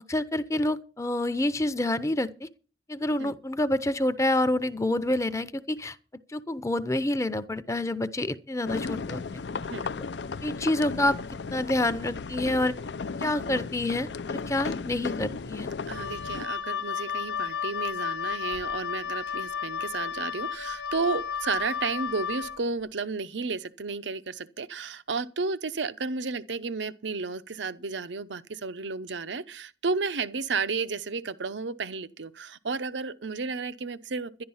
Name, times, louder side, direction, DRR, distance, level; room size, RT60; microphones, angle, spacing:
voice 1, 0.1-2.5 2.9-6.0 6.3-9.2 10.4-11.2 11.5-12.7 13.2-15.7, left 1 dB, 15° left, 0.6 m, -27 dB
sound 1, 8.7-16.5, left 4 dB, 75° left, 0.5 m, -35 dB
Wind instrument woodwind instrument, 15.9-22.6, left 7 dB, 90° left, 1.0 m, -33 dB
voice 2, 15.9-34.4, right 4 dB, 85° right, 0.8 m, -32 dB
11.5 x 11.5 x 5.6 m
head